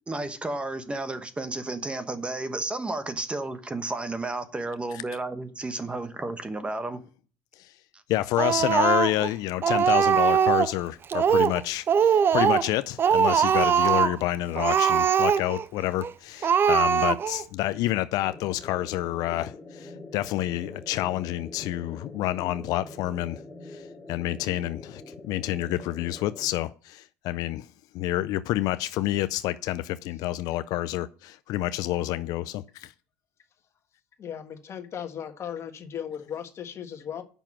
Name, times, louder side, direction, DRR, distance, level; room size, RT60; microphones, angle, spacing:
voice 1, 0.1-7.0 7.9-8.0, right 2 dB, 15° right, 1.1 m, -32 dB
voice 2, 8.1-27.7 27.9-32.9, left 15 dB, 70° left, 0.4 m, -28 dB
Speech, 8.4-9.3 9.6-10.7 11.1-11.6 11.9-12.7 13.0-14.2 14.6-15.6 16.0-16.1 16.4-17.4, right 7 dB, 35° right, 0.4 m, -21 dB
sound 1, 18.2-26.5, left 2 dB, 5° left, 4.3 m, -45 dB
voice 3, 34.2-37.2, left 9 dB, 45° left, 1.4 m, -36 dB
7.0 x 5.9 x 7.3 m
supercardioid pair, 105°, 7 cm